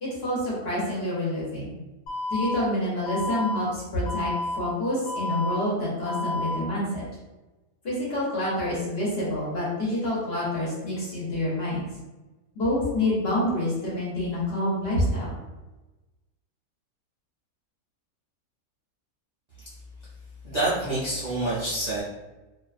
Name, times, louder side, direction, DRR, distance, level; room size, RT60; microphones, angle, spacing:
voice 1, 0.0-1.7 2.3-7.0 7.8-11.8 12.5-15.3, left 1 dB, 50° left, -6 dB, 0.9 m, -27 dB
Alarm, 2.1-2.6 3.1-3.6 4.1-4.6 5.1-5.6 6.1-6.6, left 2 dB, 85° left, 1.2 m, -30 dB
voice 2, 20.4-22.0, right 2 dB, 55° right, -10 dB, 0.4 m, -27 dB
2.5 x 2.2 x 2.4 m, 1.1 s
omnidirectional pair, 1.5 m